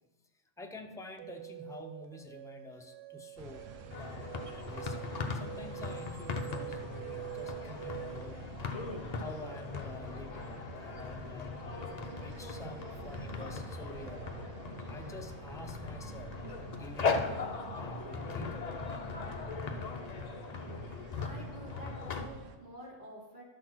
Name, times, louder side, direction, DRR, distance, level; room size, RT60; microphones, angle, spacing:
voice 1, 0.6-8.5 9.1-11.6 12.0-14.3 14.9-19.2 20.8-21.2, left 2 dB, 5° left, 3 dB, 0.3 m, -49 dB
sound 1, 1.2-8.4, right 17 dB, 65° right, 0.8 m, -46 dB
sound 2, 3.4-22.6, right 4 dB, 90° right, 1.2 m, -48 dB
sound 3, 3.9-22.3, left 4 dB, 45° left, 0.6 m, -39 dB
voice 2, 21.1-23.4, equal, 40° right, -5 dB, 2.7 m, -49 dB
12.0 x 4.2 x 6.1 m, 1.1 s
omnidirectional pair, 1.2 m